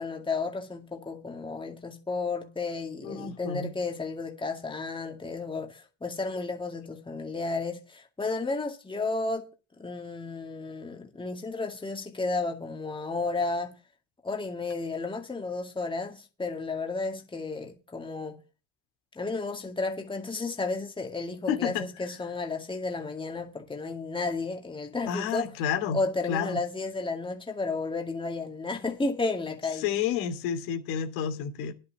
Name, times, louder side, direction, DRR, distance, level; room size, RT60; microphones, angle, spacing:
voice 1, 0.0-9.5 9.8-13.7 14.2-18.4 19.1-25.5 25.9-29.9, left 3 dB, 10° left, 2.2 m, -32 dB
voice 2, 3.0-3.7 21.5-21.9 25.1-26.0 26.3-26.6 29.8-31.7, left 8 dB, 80° left, 2.7 m, -30 dB
10.5 x 6.5 x 8.5 m
supercardioid pair, 115°, 46 cm